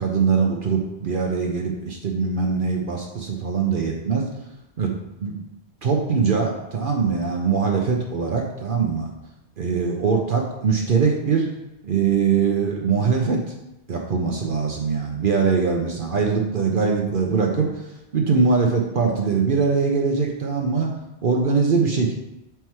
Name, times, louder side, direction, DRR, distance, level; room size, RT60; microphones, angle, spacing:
voice 1, 0.0-4.2 4.8-4.9 5.2-5.4 5.8-9.1 9.6-11.4 11.8-13.4 13.9-20.9 21.2-22.1, right 5 dB, 55° right, 1 dB, 0.9 m, -22 dB
5.8 x 4.6 x 4.6 m, 0.90 s
omnidirectional pair, 1.1 m